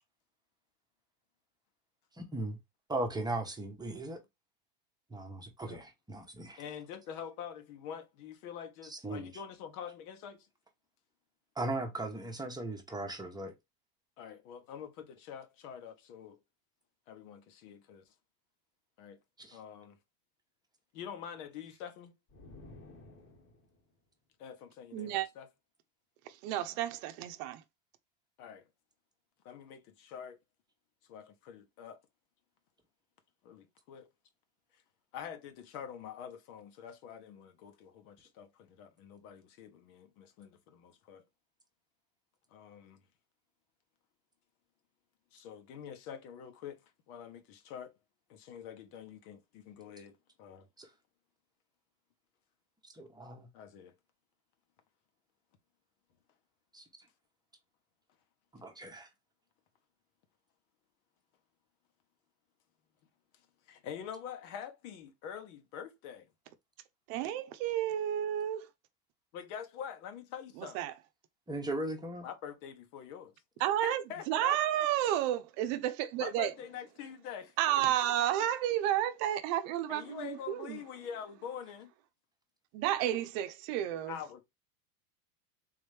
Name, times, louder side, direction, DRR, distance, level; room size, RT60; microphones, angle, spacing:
voice 1, 2.2-2.6 2.9-4.2 5.1-6.6 8.8-9.4 11.6-13.5 19.4-19.6 50.8-50.9 52.8-53.5 56.7-57.1 58.5-59.1 71.5-72.3, right 2 dB, 10° right, 1.0 m, -38 dB
voice 2, 6.6-10.5 14.2-16.4 17.1-18.0 19.0-19.2 19.5-20.0 20.9-22.1 24.4-25.5 28.4-28.6 29.4-30.4 31.1-32.0 33.4-34.1 35.1-41.2 42.5-43.0 45.3-46.8 47.1-47.9 48.3-50.7 53.5-53.9 63.7-66.3 69.3-70.9 72.2-73.3 73.8-74.9 76.2-78.5 79.9-81.9 84.1-84.4, left 8 dB, 65° left, 1.3 m, -46 dB
sound 1, 22.3-23.9, left 2 dB, 25° left, 1.2 m, -53 dB
voice 3, 24.9-25.3 26.4-27.6 67.1-68.7 70.7-70.9 73.6-76.5 77.6-80.8 82.7-84.1, right 12 dB, 55° right, 0.7 m, -31 dB
3.8 x 3.1 x 3.3 m
supercardioid pair, 115°, 48 cm